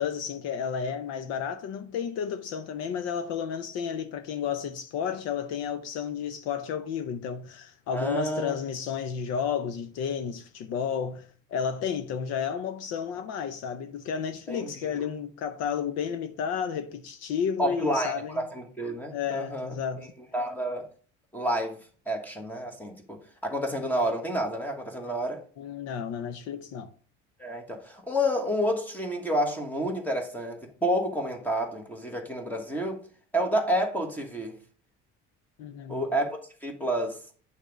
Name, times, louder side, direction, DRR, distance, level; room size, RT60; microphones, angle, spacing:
voice 1, 0.0-18.4 19.1-20.1 25.6-26.9 35.6-36.0, left 7 dB, 60° left, 0.7 m, -32 dB
voice 2, 7.9-8.5 14.5-14.9 17.6-20.1 20.3-20.8 21.3-21.8 22.1-23.2 23.4-25.4 27.4-33.0 33.3-34.6 35.9-37.2, equal, 5° left, 1.2 m, -29 dB
8.8 x 3.5 x 5.1 m
cardioid pair, 160°, 29 cm